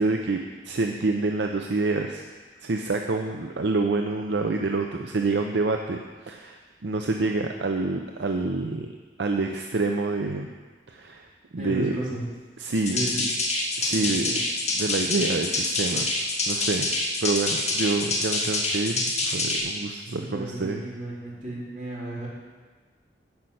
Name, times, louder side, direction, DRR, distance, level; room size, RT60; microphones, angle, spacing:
voice 1, 0.0-2.2 2.6-8.9 9.2-10.5 10.9-11.3 11.5-12.0 12.6-13.3 13.8-14.4 14.7-16.1 16.5-16.9 17.2-20.8, right 3 dB, 70° right, 3 dB, 0.6 m, -27 dB
voice 2, 11.6-12.2 12.9-13.2 13.9-14.0 14.2-14.4 20.2-22.3, right 1 dB, 45° right, -6 dB, 3.4 m, -33 dB
sound 1, 12.7-19.6, left 2 dB, 40° left, 2.1 m, -26 dB
10.5 x 5.7 x 7.8 m, 1.4 s
head